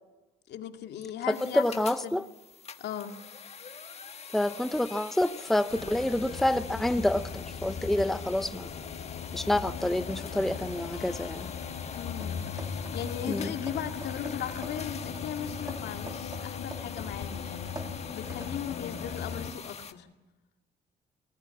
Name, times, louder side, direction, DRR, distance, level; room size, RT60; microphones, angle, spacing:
voice 1, 0.5-2.2 2.8-3.1 11.9-20.1, left 9 dB, 85° left, 5 dB, 2.4 m, -38 dB
sound 1, 1.3-19.9, left 6 dB, 40° left, 1.4 m, -45 dB
voice 2, 1.3-2.2 4.3-8.7 9.3-11.5 13.3-13.5, left 1 dB, ahead, 11 dB, 0.7 m, -28 dB
sound 2, 5.7-19.5, left 6 dB, 55° left, 3.4 m, -38 dB
sound 3, 12.2-13.1 13.4-17.2 17.5-18.6, right 3 dB, 20° right, 1.7 m, -46 dB
25.5 x 19.5 x 7.3 m, 1.1 s
cardioid pair, 130°, 17 cm